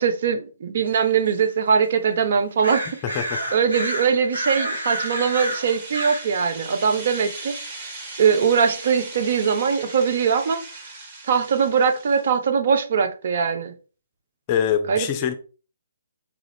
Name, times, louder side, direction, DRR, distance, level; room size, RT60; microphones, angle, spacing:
voice 1, 0.0-2.8 3.5-7.6 8.2-10.6 11.3-13.7 14.9-15.1, right 6 dB, 50° right, 0.6 m, -21 dB
sound 1, 0.9-1.0 1.3-1.4 1.8-1.9 2.6-6.4 7.5-8.2, right 1 dB, 80° right, 2.1 m, -30 dB
voice 2, 3.0-3.4 14.5-15.3, left 8 dB, 30° left, 0.5 m, -24 dB
sound 2, 4.5-12.4, right 2 dB, 35° right, 1.8 m, -39 dB
4.8 x 2.4 x 3.4 m
figure-of-eight pair, 135°, 0 cm